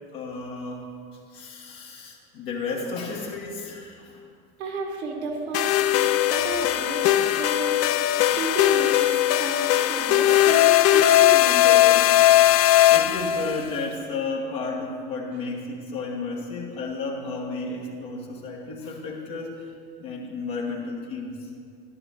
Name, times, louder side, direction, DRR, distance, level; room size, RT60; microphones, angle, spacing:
voice 1, 0.1-0.9 1.3-4.2 12.6-19.6 20.0-21.5, left 3 dB, 70° left, -3 dB, 1.5 m, -33 dB
voice 2, 4.6-7.1 7.4-7.8 8.3-12.0, right 2 dB, 80° right, 1 dB, 1.6 m, -32 dB
sound 1, 5.5-13.6, left 13 dB, 50° left, 0.5 m, -19 dB
11.0 x 9.3 x 3.5 m, 2.3 s
hypercardioid pair, 70°, 32 cm